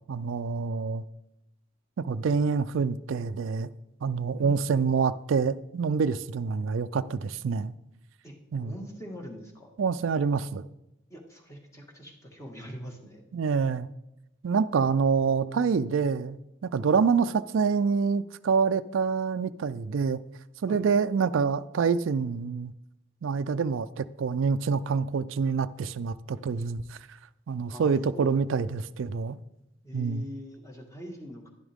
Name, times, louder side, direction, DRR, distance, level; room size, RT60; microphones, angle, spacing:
voice 1, 0.1-1.0 2.0-3.7 4.0-7.7 8.5-8.7 9.8-10.6 13.3-13.9 14.4-16.4 16.6-20.2 20.6-22.7 23.2-26.8 27.5-29.4 29.9-30.2, right 5 dB, 85° right, 0.4 m, -26 dB
voice 2, 4.4-4.8 8.2-9.7 11.1-13.2 20.7-20.8 27.7-28.5 29.8-31.5, equal, 15° left, 1.7 m, -43 dB
11.5 x 11.0 x 3.5 m
head